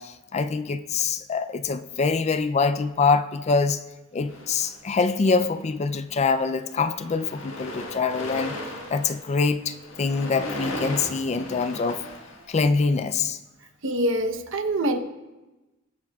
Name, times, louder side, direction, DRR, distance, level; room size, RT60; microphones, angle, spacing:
voice 1, 0.0-3.8 4.1-8.6 8.9-12.0 12.5-13.4, left 4 dB, 35° left, 0.4 m, -24 dB
sound 1, 4.3-5.3 6.0-6.2 6.5-13.0, left 1 dB, 75° left, 1.6 m, -37 dB
voice 2, 13.8-15.0, right 1 dB, 70° right, 0.9 m, -25 dB
22.0 x 7.4 x 2.3 m
head